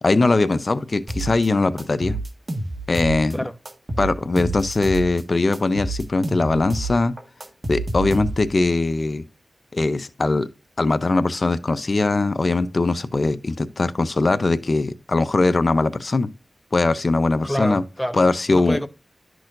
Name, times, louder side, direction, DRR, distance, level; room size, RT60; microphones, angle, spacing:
voice 1, 0.0-2.2 2.9-3.4 4.0-7.1 7.7-9.2 9.7-10.5 10.8-16.3 16.7-17.8 18.1-18.8, left 3 dB, 55° left, 0.6 m, -21 dB
sound 1, 1.1-1.5 1.8-3.3 3.6-5.2 5.5-8.6, right 2 dB, 50° right, 1.6 m, -29 dB
voice 2, 17.4-18.9, equal, ahead, 1.1 m, -28 dB
11.5 x 6.1 x 2.6 m
cardioid pair, 50°, 0 cm